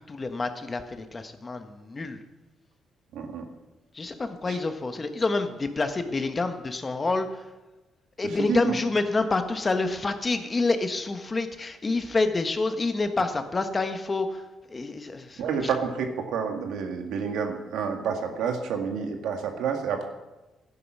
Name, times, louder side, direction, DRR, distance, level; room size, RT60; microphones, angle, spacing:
voice 1, 0.0-2.2 3.9-7.4 8.2-15.5, left 3 dB, 30° left, 8 dB, 1.3 m, -28 dB
voice 2, 3.1-3.5 4.5-4.6 8.4-8.7 15.4-20.0, right 6 dB, 80° right, 4 dB, 1.9 m, -29 dB
12.5 x 9.9 x 6.2 m, 1.1 s
cardioid pair, 90°, 0 cm